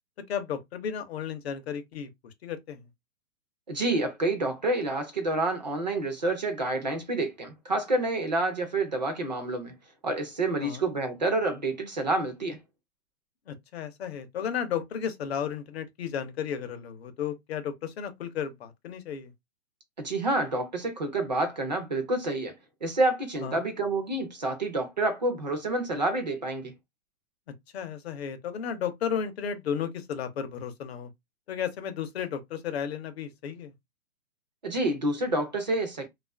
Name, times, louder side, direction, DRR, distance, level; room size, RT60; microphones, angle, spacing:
voice 1, 0.3-2.1 2.4-2.8 10.6-10.8 13.5-19.3 23.4-23.6 27.7-31.1 31.5-33.7, left 8 dB, 45° left, 0.5 m, -33 dB
voice 2, 3.7-9.7 10.0-12.6 20.0-22.5 22.8-26.7 34.6-36.1, right 2 dB, 35° right, 0.4 m, -28 dB
2.4 x 2.3 x 2.2 m
hypercardioid pair, 155°, 44 cm